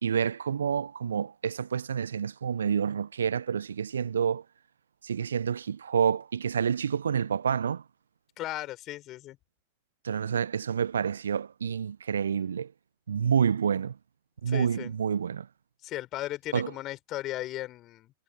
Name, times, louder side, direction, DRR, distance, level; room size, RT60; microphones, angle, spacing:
voice 1, 0.0-4.4 5.0-7.8 10.0-12.7 13.1-14.0 14.4-15.5 16.5-16.7, right 7 dB, 75° right, 1.2 m, -28 dB
voice 2, 8.4-9.4 14.5-14.9 15.8-18.1, left 15 dB, 40° left, 6.9 m, -36 dB
figure-of-eight pair, 85°, 0 cm